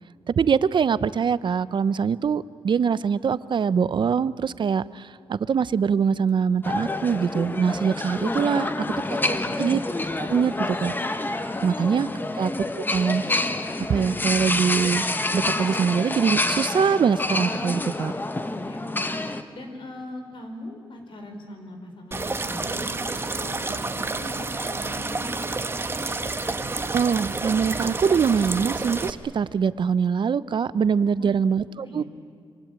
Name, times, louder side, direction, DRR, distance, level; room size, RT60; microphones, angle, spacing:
voice 1, 0.3-9.2 9.6-9.8 10.2-10.9 11.6-12.1 12.4-12.5 12.9-13.5 13.9-15.0 15.3-18.1 26.9-32.0, right 6 dB, 60° right, 16 dB, 0.8 m, -23 dB
sound 1, 6.6-19.4, left 2 dB, 20° left, 1.5 m, -28 dB
voice 2, 8.5-9.7 12.1-12.2 18.4-19.1 19.5-25.4 31.1-31.4 31.7-32.0, left 1 dB, 65° left, 5 dB, 4.9 m, -41 dB
sound 2, 22.1-29.1, right 3 dB, 25° right, 1.3 m, -29 dB
26.5 x 24.0 x 8.9 m, 2.1 s
cardioid pair, 85°, 9 cm